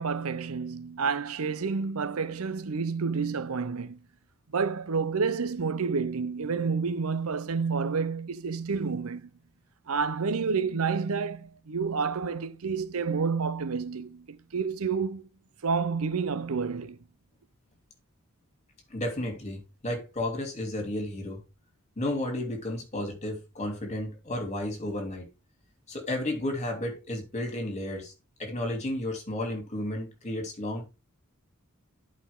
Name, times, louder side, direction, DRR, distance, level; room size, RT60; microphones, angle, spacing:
voice 1, 0.0-4.0 4.5-9.3 9.9-15.3 15.6-17.0, right 5 dB, 80° right, 0.7 m, -29 dB
voice 2, 18.9-21.4 22.0-25.2 25.9-28.1 28.4-30.9, left 1 dB, 35° left, 3.0 m, -32 dB
11.0 x 5.3 x 3.7 m
head